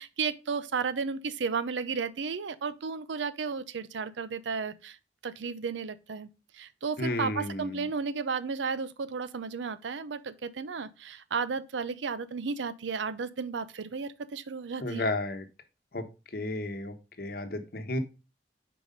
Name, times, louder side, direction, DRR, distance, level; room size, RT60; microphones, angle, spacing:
voice 1, 0.0-5.0 5.2-6.3 6.5-15.1, right 5 dB, 75° right, 0.5 m, -33 dB
voice 2, 7.0-7.8 14.8-15.4 15.9-16.0 16.3-18.0, left 2 dB, 50° left, 1.0 m, -32 dB
5.2 x 4.7 x 5.1 m
head